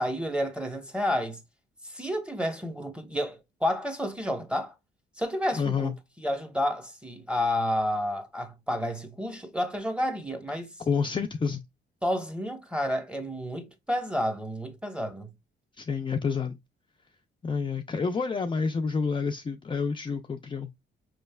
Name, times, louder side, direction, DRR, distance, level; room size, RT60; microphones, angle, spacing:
voice 1, 0.0-1.4 1.8-4.7 5.2-5.9 6.2-10.7 12.0-15.3, equal, 5° right, 1.0 m, -30 dB
voice 2, 5.5-5.9 10.9-11.6 15.8-16.6 17.4-20.7, left 5 dB, 25° left, 0.4 m, -29 dB
5.0 x 3.2 x 2.2 m
cardioid pair, 90°, 20 cm